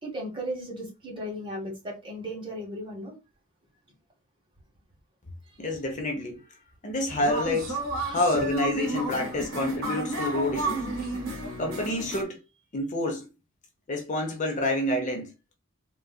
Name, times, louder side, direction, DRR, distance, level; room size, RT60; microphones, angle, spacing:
voice 1, 0.0-3.2 8.0-8.2, equal, 25° right, 1.2 m, -36 dB
voice 2, 5.6-6.4 6.8-7.8 8.1-10.9 11.6-12.4 12.7-13.3 13.9-15.3, left 1 dB, 35° left, 0.6 m, -28 dB
sound 1, 7.1-12.2, right 2 dB, 85° right, 1.2 m, -32 dB
3.8 x 2.3 x 2.3 m
head